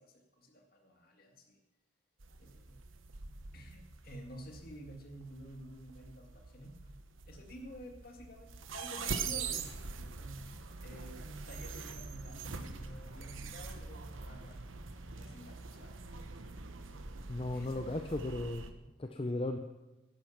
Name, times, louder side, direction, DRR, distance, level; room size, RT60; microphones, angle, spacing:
voice 1, 0.0-1.6 2.4-2.8 3.5-6.9 7.3-10.4 10.8-14.6 15.0-16.1 17.5-18.0, equal, 45° left, 3 dB, 2.0 m, -51 dB
sound 1, 2.2-18.7, right 5 dB, 85° right, 1.0 m, -44 dB
voice 2, 17.3-18.6 19.0-19.6, left 2 dB, 30° left, 6 dB, 0.6 m, -35 dB
10.5 x 10.5 x 7.1 m, 1.0 s
head